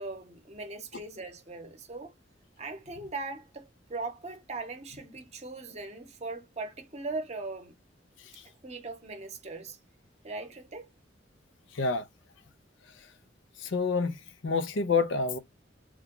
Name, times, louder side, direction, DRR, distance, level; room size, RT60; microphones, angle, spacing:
voice 1, 0.0-2.1 2.6-7.7 8.6-9.8 10.2-10.9, right 3 dB, 35° right, 0.8 m, -39 dB
voice 2, 11.7-12.1 13.6-15.4, left 4 dB, 85° left, 0.6 m, -28 dB
3.0 x 2.2 x 3.7 m
head